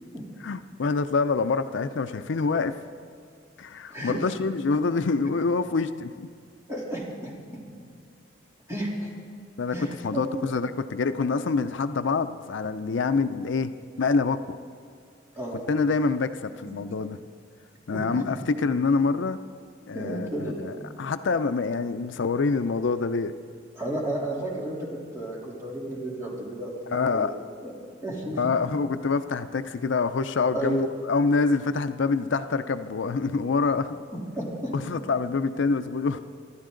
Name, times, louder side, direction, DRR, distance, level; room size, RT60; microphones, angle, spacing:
voice 1, 0.4-2.7 3.6-6.3 9.6-9.7 10.0-13.7 14.0-14.6 15.5-17.2 17.9-19.4 19.9-23.3 26.9-27.3 28.4-34.0 34.7-36.2, left 4 dB, 70° left, 10 dB, 0.5 m, -26 dB
voice 2, 6.7-7.6 8.7-9.1 9.7-10.6 13.3-13.4 15.3-15.7 16.0-16.1 16.6-16.8 17.9-18.2 19.9-20.6 23.7-27.2 27.6-28.5 30.5-30.8 34.1-34.7, right 1 dB, 15° right, -5 dB, 3.1 m, -33 dB
25.5 x 12.5 x 3.8 m, 2.3 s
head